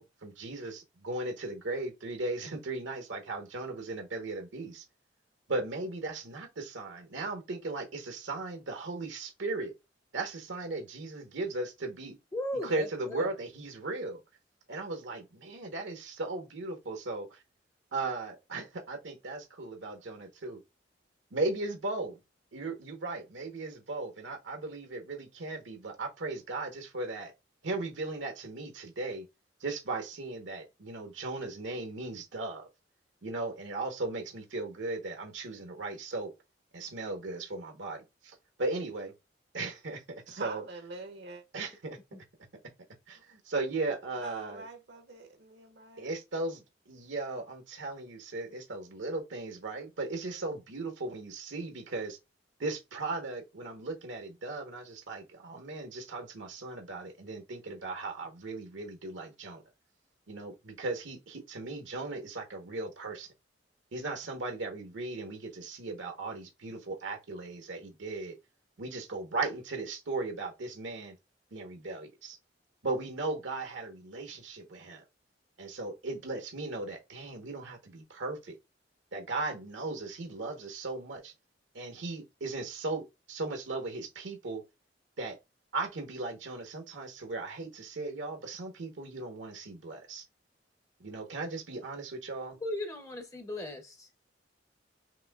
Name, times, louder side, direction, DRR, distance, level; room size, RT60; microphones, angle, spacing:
voice 1, 0.0-4.8 5.5-9.7 10.1-12.2 12.5-14.2 14.7-17.4 17.9-20.6 21.3-22.2 22.5-27.3 27.6-29.3 29.6-32.7 33.2-36.3 36.7-39.1 39.5-40.6 41.5-42.0 43.1-44.7 46.0-52.2 52.6-59.6 60.3-63.3 63.9-68.4 68.8-71.2 71.5-72.4 72.8-75.0 75.6-78.6 79.1-81.3 81.7-84.6 85.2-85.4 85.7-90.2 91.0-92.6, right 2 dB, 85° right, 1.0 m, -37 dB
voice 2, 12.3-13.3 42.1-42.2 92.6-94.1, left 1 dB, 15° left, 0.5 m, -37 dB
voice 3, 40.3-41.4 44.2-46.1, right 3 dB, 65° right, 0.7 m, -45 dB
5.9 x 2.6 x 2.2 m
head